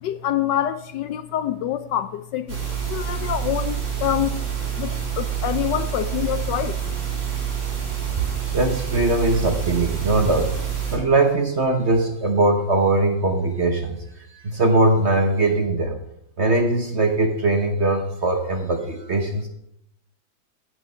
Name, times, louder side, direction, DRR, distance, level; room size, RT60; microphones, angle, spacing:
voice 1, 0.0-2.6 2.9-4.4 4.8-6.8, left 11 dB, 75° left, 1.1 m, -26 dB
sound 1, 2.5-11.0, right 8 dB, 65° right, 3.9 m, -27 dB
voice 2, 8.5-10.6 10.9-14.0 14.3-16.0 16.4-19.5, right 2 dB, 45° right, 1.0 m, -21 dB
15.5 x 6.3 x 5.5 m
omnidirectional pair, 2.2 m